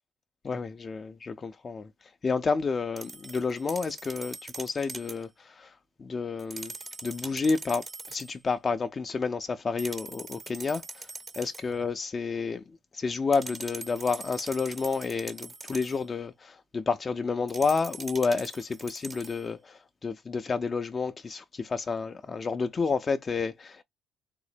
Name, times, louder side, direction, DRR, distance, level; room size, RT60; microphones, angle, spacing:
voice 1, 0.4-6.7 7.0-11.1 11.4-12.6 12.9-23.8, left 4 dB, 35° left, 0.3 m, -30 dB
sound 1, 3.0-5.2 6.4-8.3 9.8-11.7 13.3-16.0 17.5-19.5, right 3 dB, 25° right, 0.5 m, -43 dB
3.7 x 2.0 x 3.2 m
supercardioid pair, 85°, 0 cm